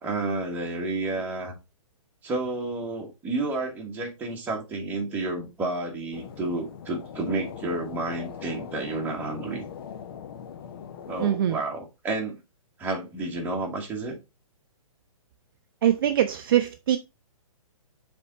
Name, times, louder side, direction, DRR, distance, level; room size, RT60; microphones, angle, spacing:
voice 1, 0.0-1.6 2.2-9.7 11.1-12.4 12.8-14.2, right 2 dB, 10° right, 1.5 m, -30 dB
sound 1, 6.1-11.3, left 8 dB, 40° left, 0.7 m, -41 dB
voice 2, 11.2-11.6 15.8-17.0, right 11 dB, 40° right, 0.5 m, -23 dB
6.9 x 3.6 x 4.0 m
hypercardioid pair, 160°, 18 cm